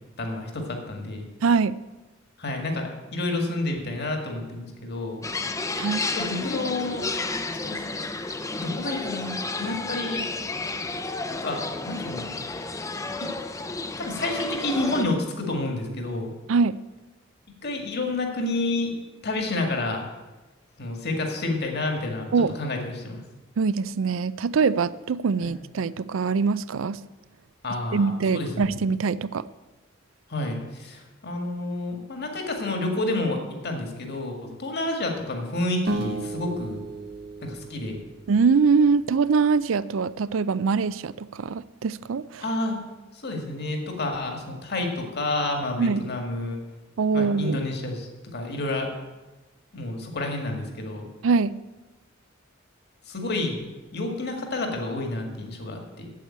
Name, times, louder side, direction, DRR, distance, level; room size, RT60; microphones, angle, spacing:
voice 1, 0.2-1.3 2.4-5.2 6.0-7.1 7.6-8.1 8.5-10.3 11.3-12.3 13.2-13.3 14.0-16.3 17.6-18.9 19.2-20.1 20.8-23.2 25.4-25.5 27.6-28.8 30.3-36.8 37.4-38.0 42.4-42.8 43.1-46.6 47.1-48.9 49.7-51.1 53.1-53.6 53.9-56.1, left 2 dB, 55° left, 3 dB, 1.9 m, -29 dB
voice 2, 1.4-1.8 5.8-6.1 16.5-16.8 22.3-22.5 23.6-27.0 27.9-29.4 38.3-42.4 45.8-46.0 47.0-47.6 51.2-51.5, right 5 dB, 70° right, 17 dB, 0.4 m, -23 dB
sound 1, 5.2-15.0, left 3 dB, 15° left, 0.6 m, -31 dB
sound 2, 35.9-39.0, right 2 dB, 55° right, 1.0 m, -34 dB
8.5 x 8.2 x 8.7 m, 1.1 s
head